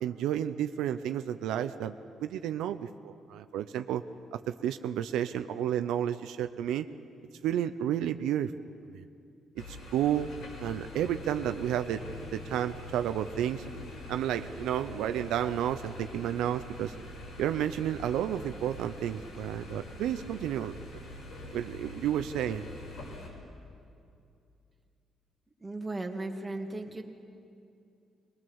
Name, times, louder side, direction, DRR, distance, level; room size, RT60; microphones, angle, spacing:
voice 1, 0.0-4.0 4.3-6.9 7.4-8.5 8.9-9.0 9.6-10.3 10.6-13.6 14.1-16.9 17.4-20.7 21.5-22.7, right 10 dB, 90° right, 10 dB, 0.5 m, -31 dB
sound 1, 9.6-23.3, left 1 dB, 80° left, 6.0 m, -44 dB
voice 2, 25.6-27.0, right 2 dB, 20° right, 3 dB, 2.0 m, -36 dB
21.0 x 20.5 x 7.1 m, 2.5 s
cardioid pair, 90°, 0 cm